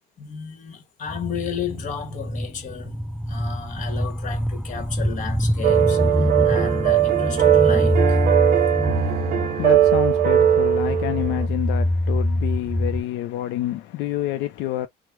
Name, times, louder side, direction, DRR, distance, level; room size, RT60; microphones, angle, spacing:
voice 1, 0.2-6.0 6.4-8.2, left 7 dB, 50° left, 1.2 m, -33 dB
sound 1, 1.1-13.0, left 1 dB, 5° right, 0.3 m, -25 dB
sound 2, 5.6-11.5, right 11 dB, 60° right, 0.6 m, -19 dB
voice 2, 8.9-14.9, left 13 dB, 90° left, 0.4 m, -28 dB
3.0 x 2.0 x 3.3 m
cardioid pair, 110°, 17 cm